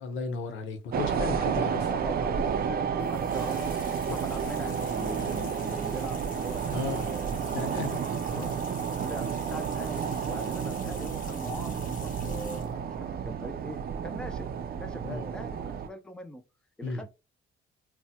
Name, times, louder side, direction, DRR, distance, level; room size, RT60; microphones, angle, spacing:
voice 1, 0.0-1.9 4.1-4.2 5.2-5.4 6.7-7.0 7.5-8.0 8.3-8.5 15.0-15.2 16.8-17.0, left 4 dB, 80° left, 0.8 m, -35 dB
voice 2, 0.9-1.4 1.9-2.6 3.0-3.6 4.1-7.8 8.1-8.7 9.0-14.5 14.7-16.4 16.8-17.1, equal, 5° left, 0.5 m, -42 dB
sound 1, 0.9-15.9, right 7 dB, 50° right, 0.5 m, -31 dB
sound 2, 3.0-12.8, left 4 dB, 45° left, 1.0 m, -48 dB
4.0 x 2.2 x 2.2 m
cardioid pair, 90°, 20 cm